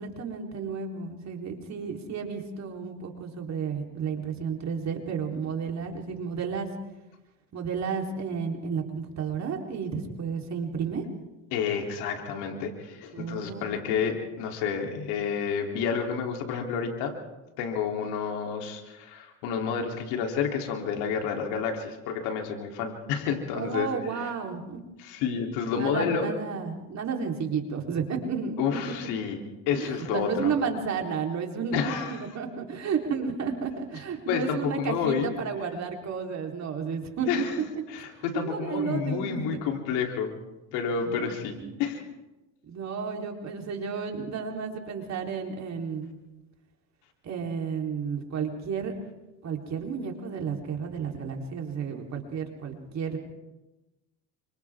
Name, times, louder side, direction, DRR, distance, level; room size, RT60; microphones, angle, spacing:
voice 1, 0.0-6.7 7.5-11.0 13.1-13.8 23.5-24.8 25.7-28.5 29.7-37.5 38.3-39.4 41.1-41.3 41.6-41.8 42.7-46.1 47.2-48.9 49.4-53.2, right 6 dB, 40° right, 2 dB, 4.0 m, -32 dB
voice 2, 11.5-17.1 17.6-23.9 25.0-26.3 28.6-29.4 29.7-30.6 31.7-32.2 34.3-35.3 37.3-37.6 37.9-40.3 40.7-42.0, left 6 dB, 75° left, 2 dB, 3.5 m, -29 dB
29.0 x 26.0 x 3.7 m, 1.0 s
supercardioid pair, 100°, 39 cm